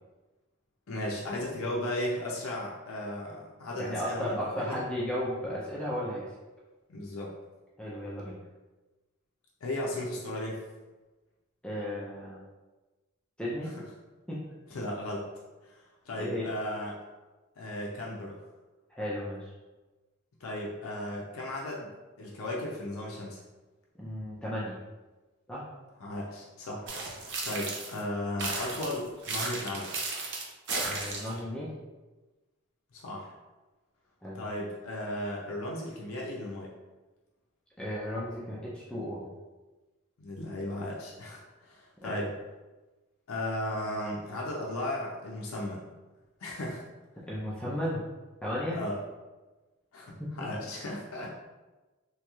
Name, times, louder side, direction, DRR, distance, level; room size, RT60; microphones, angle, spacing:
voice 1, 0.9-4.8 6.9-7.3 9.6-10.6 14.7-15.3 15.7-17.0 17.6-18.4 20.4-21.9 22.2-23.4 26.0-26.9 27.4-29.9 32.9-33.3 34.3-36.7 40.2-42.3 43.3-45.8 46.4-46.8 48.7-49.0 49.9-51.4, left 1 dB, 75° left, -3 dB, 0.5 m, -35 dB
voice 2, 3.7-6.2 7.8-8.3 11.6-12.5 13.4-13.7 14.3-14.4 16.2-16.5 18.9-19.5 24.0-24.7 25.5-25.6 30.8-31.7 34.2-34.4 37.8-39.2 42.0-42.3 47.3-48.0 48.4-48.8 50.2-50.3, equal, 5° left, -7 dB, 0.4 m, -34 dB
sound 1, 26.9-28.0 28.4-31.4, right 3 dB, 60° right, 0.5 m, -34 dB
3.0 x 2.3 x 2.9 m, 1.2 s
head